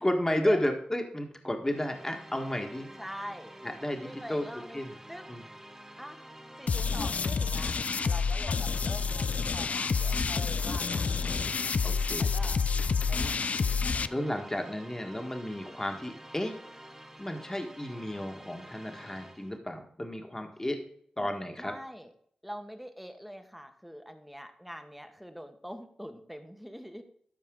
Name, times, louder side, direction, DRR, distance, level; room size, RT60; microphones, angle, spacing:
voice 1, 0.0-2.9 3.6-4.4 4.7-4.9 5.3-5.4 11.8-12.3 13.1-13.4 14.1-16.5 17.2-20.8 21.2-21.7, left 1 dB, 20° left, 3 dB, 1.6 m, -32 dB
sound 1, 1.6-19.6, right 1 dB, 20° right, 1.3 m, -49 dB
voice 2, 3.0-3.5 4.0-4.8 5.1-5.3 6.0-6.2 6.6-7.8 8.1-11.7 12.2-12.6 13.1-14.3 21.2-21.3 21.6-22.1 22.4-27.0, equal, ahead, 7 dB, 1.3 m, -44 dB
sound 2, 6.7-14.1, left 5 dB, 60° left, 0.3 m, -29 dB
13.0 x 4.7 x 3.8 m, 0.64 s
cardioid pair, 40°, 3 cm